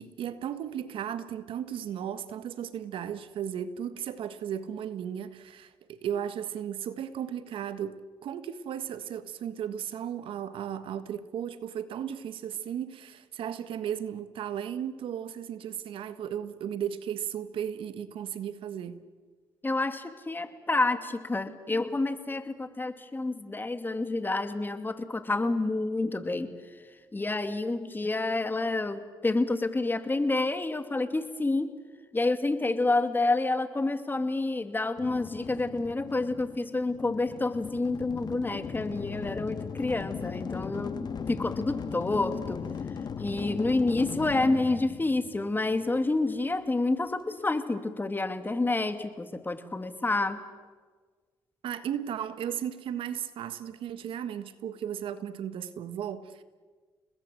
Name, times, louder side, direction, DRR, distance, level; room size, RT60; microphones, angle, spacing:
voice 1, 0.0-19.0 51.6-56.4, right 9 dB, 75° right, 1.5 m, -35 dB
voice 2, 19.6-26.5 27.1-31.7 32.1-42.6 43.2-50.4, left 2 dB, 20° left, 2.5 m, -29 dB
sound 1, 35.0-46.0, left 6 dB, 50° left, 1.6 m, -38 dB
30.0 x 20.5 x 7.8 m
supercardioid pair, 70°, 9 cm